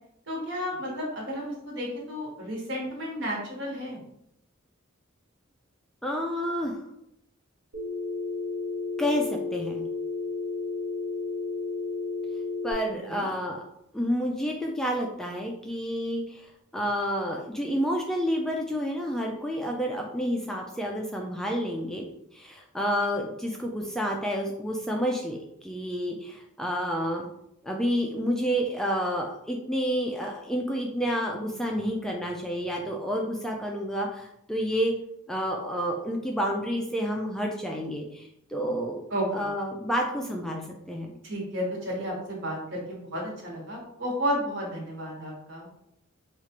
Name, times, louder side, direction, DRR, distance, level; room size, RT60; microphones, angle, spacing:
voice 1, 0.3-4.0 13.1-13.3 39.1-39.5 41.2-45.7, equal, 60° right, -3 dB, 1.3 m, -32 dB
voice 2, 6.0-6.9 9.0-9.8 12.6-13.6 13.9-22.1 22.3-27.2 27.6-34.9 35.3-39.1 39.3-41.1, equal, ahead, 0 dB, 0.3 m, -29 dB
Telephone, 7.7-12.7, left 3 dB, 85° right, 1.4 m, -32 dB
4.5 x 2.4 x 2.9 m, 0.79 s
head